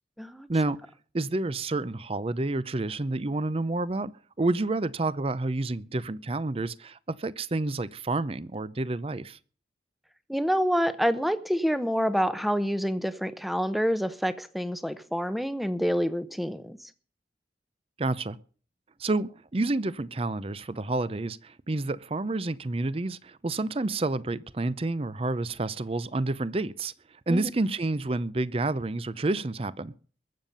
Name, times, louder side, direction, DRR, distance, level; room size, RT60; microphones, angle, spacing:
voice 1, 1.1-4.1 4.4-9.4 18.0-18.4 19.0-26.9 27.3-29.9, right 2 dB, 35° right, 0.6 m, -29 dB
voice 2, 10.3-16.8 27.3-27.5, equal, ahead, 0.8 m, -27 dB
22.0 x 7.3 x 5.3 m
head